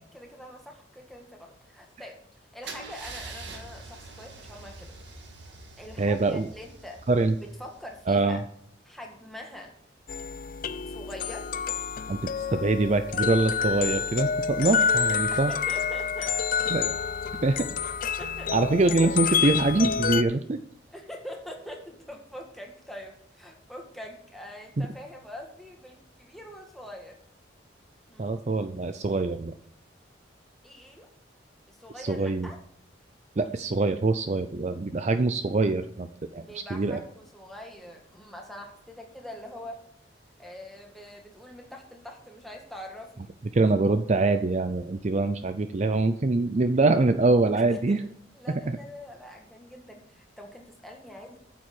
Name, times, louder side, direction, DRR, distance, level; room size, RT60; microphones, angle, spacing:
voice 1, 0.1-2.2 2.5-4.9 5.8-7.0 7.4-8.4 8.9-9.7 10.9-11.5 15.3-16.3 18.2-18.5 20.9-27.2 28.1-28.3 30.6-31.1 31.7-32.6 36.4-39.8 40.4-43.3 47.7-48.0 48.4-51.4, left 1 dB, ahead, 1 dB, 1.8 m, -44 dB
Car / Engine starting / Idling, 2.6-8.5, right 3 dB, 65° right, 1.8 m, -45 dB
voice 2, 6.0-6.5 7.1-7.3 8.1-8.4 12.1-12.2 12.5-15.5 16.7-16.9 17.4-17.7 18.5-20.6 24.8-24.9 28.2-29.5 32.0-32.5 33.4-36.4 36.7-37.0 43.5-48.0 48.5-48.8, right 3 dB, 35° right, 9 dB, 0.5 m, -24 dB
sound 1, 10.1-20.2, left 6 dB, 45° left, 0.5 m, -28 dB
9.2 x 7.3 x 6.1 m, 0.67 s
head